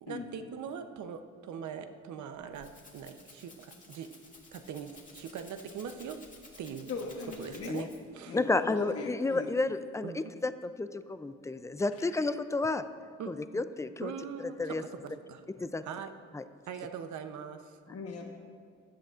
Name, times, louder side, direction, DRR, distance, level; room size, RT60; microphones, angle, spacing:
voice 1, 0.0-4.1 4.5-6.2 6.6-6.9 7.4-7.9 8.1-8.4 10.0-10.3 13.2-13.6 14.0-15.4 15.8-16.1 16.7-17.8, right 7 dB, 70° right, 8 dB, 0.8 m, -42 dB
Rattle (instrument), 2.3-8.2, left 2 dB, 25° left, 1.9 m, -54 dB
voice 2, 6.9-7.7 8.3-9.5 12.0-12.1 17.9-18.3, left 4 dB, 50° left, 1 dB, 1.2 m, -39 dB
voice 3, 8.3-12.8 13.3-14.1 14.6-14.8 15.6-15.8 16.3-16.4, left 3 dB, 10° left, 12 dB, 0.4 m, -31 dB
15.5 x 10.5 x 2.5 m, 2.1 s
cardioid pair, 90°, 30 cm